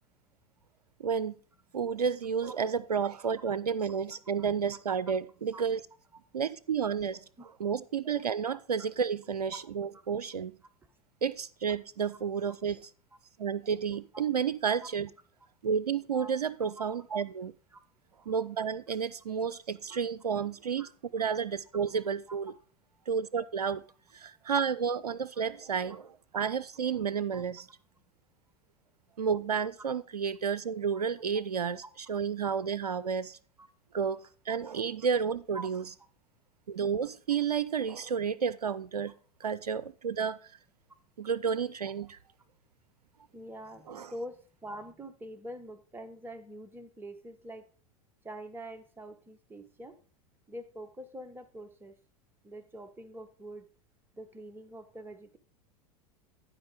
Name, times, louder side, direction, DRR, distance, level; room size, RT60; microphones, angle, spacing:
voice 1, 1.0-1.4 1.7-5.8 6.3-7.2 7.6-10.5 11.2-12.9 13.4-15.1 15.6-17.5 18.3-22.5 23.1-23.8 24.2-27.7 29.2-33.4 33.9-35.8 36.7-39.1 39.4-40.4 41.2-42.2 43.9-44.1, right 6 dB, 85° right, 18 dB, 0.4 m, -31 dB
voice 2, 43.3-47.7 48.2-50.0 50.5-51.9 52.4-53.7 54.1-55.4, right 1 dB, 10° right, 6 dB, 1.2 m, -45 dB
11.0 x 5.0 x 4.9 m, 0.40 s
figure-of-eight pair, 85°, 19 cm